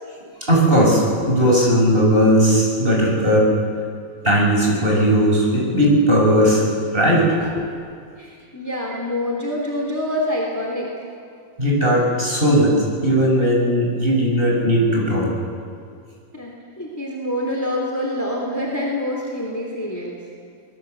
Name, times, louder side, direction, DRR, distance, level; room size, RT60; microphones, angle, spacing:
voice 1, 0.4-3.5 4.2-6.7 6.9-7.6 11.6-12.8 13.0-15.3, equal, 25° right, -2 dB, 7.1 m, -17 dB
voice 2, 8.2-11.0 16.3-20.2, left 1 dB, 10° left, -1 dB, 3.2 m, -26 dB
26.5 x 20.5 x 8.1 m, 2.2 s
omnidirectional pair, 2.1 m